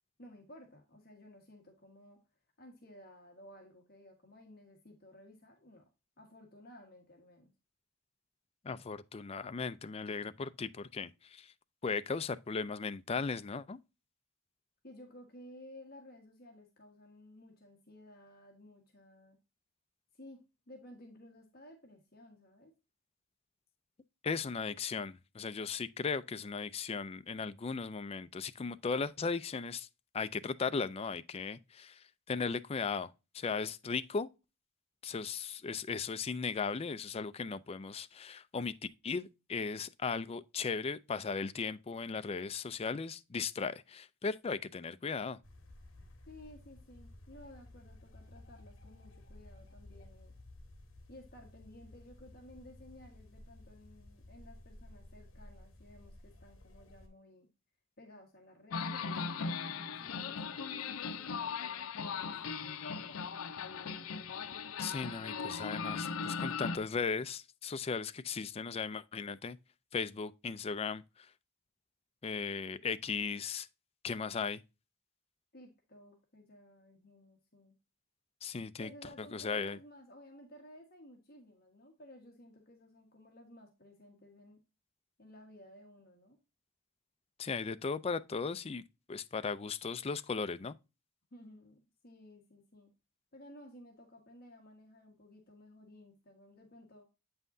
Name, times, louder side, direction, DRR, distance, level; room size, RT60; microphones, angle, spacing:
voice 1, 0.2-2.2 2.6-5.9 6.2-7.5 14.8-19.4 20.1-20.4 20.7-22.7 46.3-50.3 51.1-57.5 58.0-63.5 75.5-77.7 78.8-84.6 85.2-86.4 91.3-92.9 93.3-97.0, left 1 dB, 45° left, 1.5 m, -56 dB
voice 2, 8.6-11.5 11.8-13.8 24.2-29.9 30.1-34.3 35.0-38.7 39.0-45.4 64.8-69.6 69.9-71.3 72.2-73.7 74.0-74.6 78.4-78.9 79.3-79.8 87.4-90.7, left 5 dB, 30° left, 0.4 m, -37 dB
sound 1, 45.4-57.1, left 1 dB, 65° left, 1.8 m, -55 dB
sound 2, 58.7-66.8, left 5 dB, 85° left, 0.6 m, -38 dB
8.2 x 5.6 x 2.6 m
head